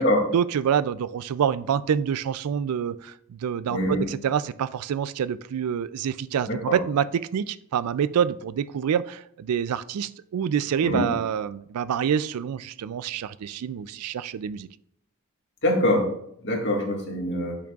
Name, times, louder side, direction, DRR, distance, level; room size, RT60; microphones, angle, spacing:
voice 1, 0.3-7.1 7.3-14.7, right 8 dB, 90° right, 17 dB, 0.4 m, -27 dB
voice 2, 3.7-4.0 6.5-6.8 10.8-11.1 15.6-16.1 16.4-17.6, left 1 dB, 50° left, -1 dB, 1.8 m, -24 dB
10.5 x 6.0 x 2.4 m, 0.71 s
head